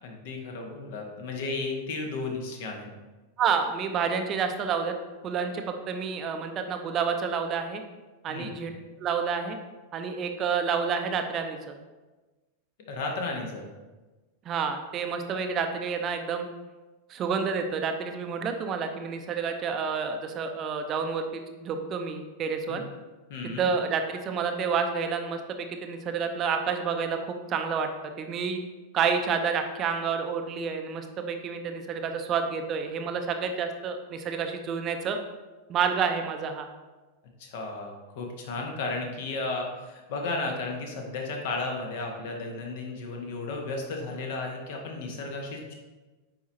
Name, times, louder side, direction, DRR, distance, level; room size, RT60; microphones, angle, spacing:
voice 1, 0.0-2.9 8.3-8.5 12.9-13.7 22.7-22.8 23.3-23.7 37.4-45.7, left 3 dB, 50° left, 2 dB, 1.2 m, -34 dB
voice 2, 3.4-4.9 5.2-7.8 8.2-8.7 9.0-9.6 9.9-11.7 14.5-16.5 17.1-22.8 23.4-27.9 28.2-28.6 28.9-35.2 35.7-36.7, right 6 dB, 30° right, 6 dB, 0.6 m, -29 dB
9.3 x 4.6 x 2.7 m, 1.2 s
figure-of-eight pair, 90°, 0 cm